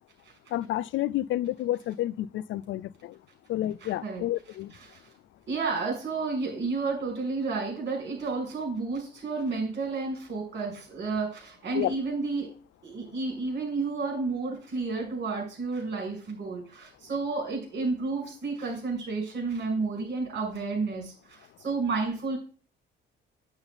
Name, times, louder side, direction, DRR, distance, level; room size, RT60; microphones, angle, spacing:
voice 1, 0.5-3.2 3.5-4.7 11.7-11.9, left 14 dB, 75° left, 0.5 m, -30 dB
voice 2, 3.8-4.2 4.9-5.0 5.5-12.5 12.8-22.4, right 4 dB, 60° right, 6.4 m, -31 dB
8.9 x 8.7 x 4.1 m
cardioid pair, 90°, 20 cm